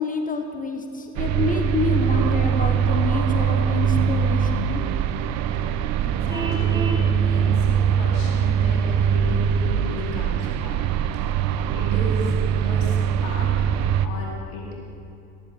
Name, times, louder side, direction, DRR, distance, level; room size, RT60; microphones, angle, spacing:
voice 1, 0.0-4.8, left 3 dB, 20° left, 5 dB, 1.1 m, -27 dB
sound 1, 1.2-14.1, right 8 dB, 40° right, 0.6 m, -22 dB
voice 2, 6.0-10.9 11.7-12.4 12.6-13.6 14.0-14.7, left 1 dB, 50° left, -2 dB, 2.6 m, -35 dB
Vehicle horn car horn honking, 6.3-7.1, right 4 dB, 10° right, 1.4 m, -30 dB
14.0 x 14.0 x 3.6 m, 2.7 s
figure-of-eight pair, 65°, 41 cm